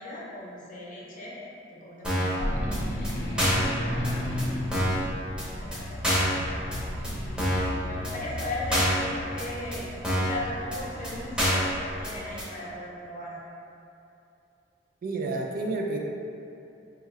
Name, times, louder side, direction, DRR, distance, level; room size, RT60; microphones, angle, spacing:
voice 1, 0.0-1.4 1.7-3.4 3.9-5.2 5.6-6.4 7.0-11.7 12.0-13.4, left 1 dB, 45° left, -5 dB, 0.7 m, -38 dB
sound 1, 2.0-2.4 2.7-2.8 3.0-3.1 3.4-3.7 4.0-4.1 4.4-4.5 4.7-5.0 5.4-5.5 5.7-5.8 6.0-6.4 6.7-6.8 7.0-7.1 7.4-7.7 8.0-8.1 8.4-8.5 8.7-9.0 9.4-9.5 9.7-9.8 10.0-10.4 10.7-10.8 11.0-11.1 11.4-11.7 12.0-12.1 12.4-12.5, equal, 5° right, 0.7 m, -26 dB
sound 2, 2.4-12.3, left 1 dB, 75° left, 0.6 m, -34 dB
voice 2, 15.0-16.0, right 2 dB, 50° right, 0 dB, 0.4 m, -30 dB
4.4 x 2.3 x 3.1 m, 2.8 s
head